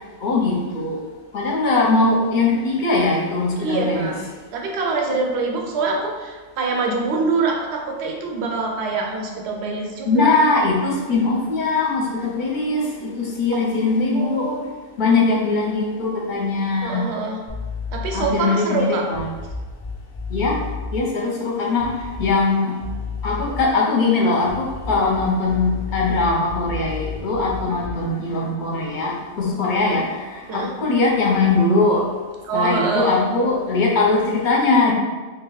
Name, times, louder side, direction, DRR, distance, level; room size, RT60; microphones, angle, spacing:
voice 1, 0.2-1.0 1.3-4.1 10.1-14.5 15.0-17.1 18.1-19.3 20.3-20.6 20.9-22.7 23.2-32.0 32.5-34.9, left 3 dB, 45° left, -2 dB, 0.8 m, -21 dB
voice 2, 3.6-4.3 4.5-10.3 13.5-13.6 14.1-14.6 16.8-17.4 17.9-19.0 29.8-30.0 30.5-30.7 32.5-33.3, right 3 dB, 65° right, 1 dB, 0.9 m, -24 dB
sound 1, 17.5-18.4 19.1-21.0 21.8-22.5 22.8-23.8 24.4-28.1, left 4 dB, 20° left, 0.4 m, -32 dB
3.0 x 2.8 x 3.9 m, 1.3 s
omnidirectional pair, 1.3 m